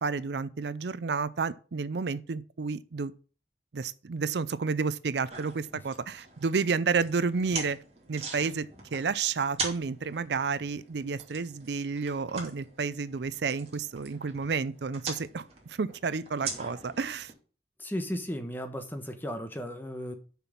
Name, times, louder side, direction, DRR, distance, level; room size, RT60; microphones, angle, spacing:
voice 1, 0.0-3.1 3.7-7.8 8.1-17.3, right 5 dB, 75° right, 0.5 m, -31 dB
sound 1, 5.3-17.3, right 4 dB, 35° right, 2.7 m, -42 dB
voice 2, 17.8-20.1, equal, 10° left, 1.2 m, -35 dB
6.9 x 6.0 x 7.3 m
head